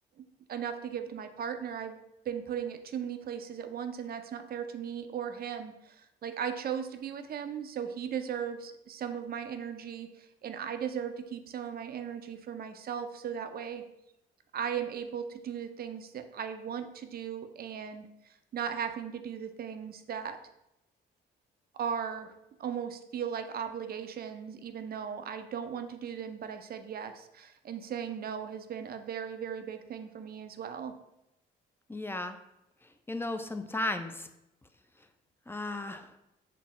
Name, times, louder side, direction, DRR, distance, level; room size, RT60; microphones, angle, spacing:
voice 1, 0.5-2.0 2.3-13.8 14.5-18.1 18.5-20.4 21.7-22.3 22.6-30.9, right 8 dB, 50° right, 8 dB, 0.5 m, -37 dB
voice 2, 31.9-32.4 32.8-34.3 35.5-36.1, left 2 dB, 10° left, 8 dB, 0.4 m, -35 dB
5.8 x 2.0 x 3.6 m, 0.86 s
supercardioid pair, 60°, 21 cm